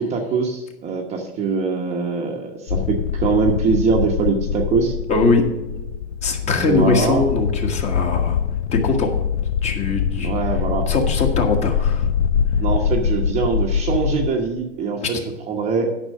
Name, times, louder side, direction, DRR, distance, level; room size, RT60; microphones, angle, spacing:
voice 1, 0.0-4.9 6.5-7.2 10.2-10.9 12.6-15.2 15.5-15.9, right 5 dB, 20° right, 2 dB, 1.1 m, -22 dB
sound 1, 2.7-14.3, left 7 dB, 85° left, 0.7 m, -23 dB
voice 2, 5.1-5.4 6.2-8.4 8.7-9.1 9.6-10.3 10.9-12.1 15.0-15.1, left 3 dB, 20° left, 3 dB, 1.4 m, -21 dB
10.0 x 6.1 x 7.4 m, 1.0 s
supercardioid pair, 155°, 33 cm